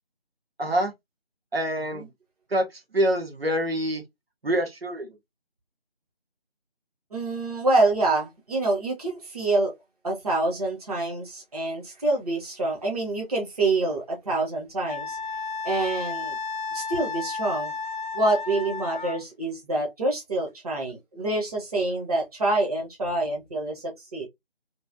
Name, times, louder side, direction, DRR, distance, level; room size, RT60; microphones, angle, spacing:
voice 1, 0.6-0.9 1.5-2.0 2.5-4.0 4.4-5.1, right 1 dB, 70° right, 1.3 m, -26 dB
voice 2, 7.1-9.7 10.0-15.2 15.6-16.4 16.7-17.7 18.1-24.3, right 2 dB, 40° right, 1.0 m, -26 dB
Wind instrument woodwind instrument, 14.9-19.2, left 4 dB, 55° left, 0.5 m, -33 dB
3.2 x 2.8 x 2.6 m
figure-of-eight pair, 165°, 31 cm